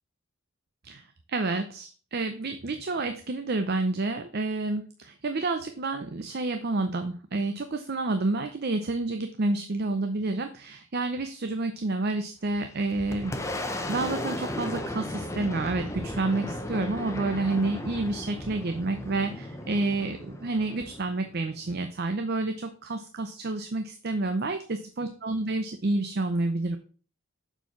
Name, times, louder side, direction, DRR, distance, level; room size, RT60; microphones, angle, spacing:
voice 1, 1.3-13.3 13.6-26.8, right 2 dB, 50° right, 8 dB, 0.6 m, -29 dB
Boom, 12.4-21.9, left 1 dB, 15° left, 0.8 m, -36 dB
6.9 x 4.6 x 5.7 m, 0.40 s
head